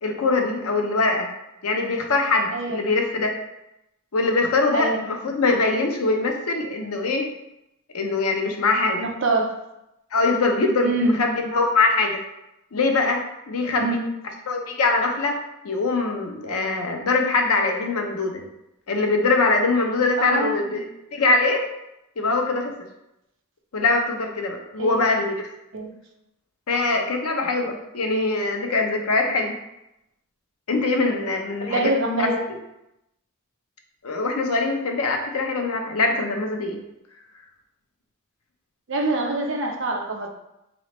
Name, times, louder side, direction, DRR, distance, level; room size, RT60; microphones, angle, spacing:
voice 1, 0.0-1.3 1.6-3.3 4.1-7.3 7.9-9.1 10.1-12.2 12.7-14.0 14.5-15.4 15.6-18.5 18.9-20.9 21.1-21.7 22.2-22.7 23.7-25.3 26.7-29.5 30.7-31.9 32.2-32.6 34.0-36.8, left 3 dB, 90° left, 3 dB, 0.7 m, -23 dB
voice 2, 2.5-2.8 4.7-5.0 9.0-9.5 10.8-11.2 13.8-14.1 20.2-20.8 24.8-25.0 25.7-25.9 31.6-32.4 38.9-40.3, right 2 dB, 55° right, 2 dB, 0.6 m, -25 dB
4.0 x 3.1 x 3.1 m, 0.87 s
head